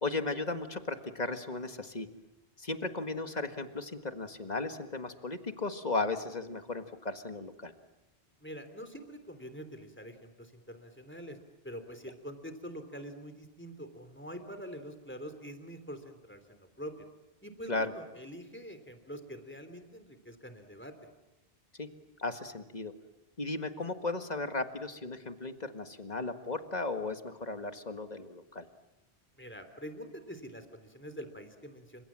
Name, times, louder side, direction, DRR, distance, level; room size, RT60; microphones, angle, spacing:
voice 1, 0.0-2.1 2.6-7.7 17.7-17.9 21.8-21.9 22.2-22.9 23.4-28.7, left 3 dB, 40° left, 8 dB, 1.8 m, -35 dB
voice 2, 8.4-11.4 11.6-17.0 17.4-20.9 29.4-32.0, equal, 10° left, 8 dB, 3.2 m, -45 dB
30.0 x 26.5 x 7.6 m, 0.96 s
omnidirectional pair, 1.1 m